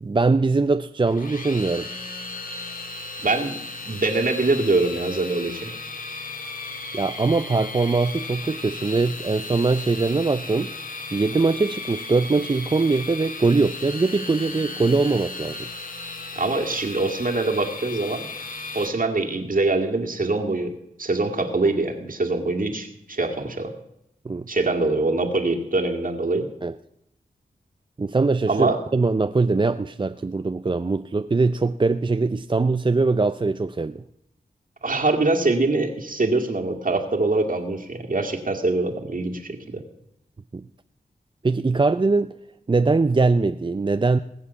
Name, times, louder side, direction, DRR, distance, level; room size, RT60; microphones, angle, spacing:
voice 1, 0.0-1.9 6.9-10.7 11.1-15.7 24.2-24.5 26.6-26.7 28.0-34.0 40.5-40.6 41.4-42.3 42.7-44.2, right 3 dB, 30° right, 10 dB, 0.5 m, -22 dB
sound 1, 1.1-18.9, left 3 dB, 55° left, 1.7 m, -35 dB
voice 2, 3.2-3.6 3.9-5.7 16.4-18.3 18.7-20.7 21.0-23.7 24.5-26.5 28.5-28.8 34.8-39.8, right 3 dB, 55° right, 3 dB, 2.2 m, -23 dB
20.0 x 7.4 x 7.0 m, 0.79 s
cardioid pair, 45°, 17 cm